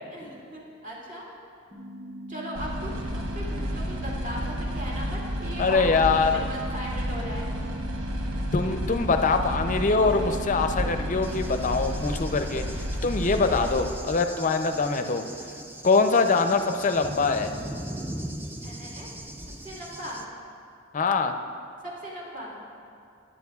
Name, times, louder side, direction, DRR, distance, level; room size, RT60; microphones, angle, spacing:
voice 1, 0.1-1.2 2.3-5.8 6.1-7.5 18.6-19.1 19.6-20.2 21.8-22.5, equal, 45° right, -5 dB, 2.4 m, -38 dB
sound 1, 1.7-11.7, right 1 dB, 25° right, 2.0 m, -40 dB
sound 2, 2.5-13.9, equal, 90° right, 1.0 m, -31 dB
voice 2, 5.6-6.5 8.5-15.2 15.8-17.5 20.9-21.3, left 4 dB, 40° left, 7 dB, 0.5 m, -23 dB
Cricket / Thunder, 11.2-20.2, right 1 dB, 10° right, 0.5 m, -40 dB
16.5 x 9.9 x 2.4 m, 2.4 s
head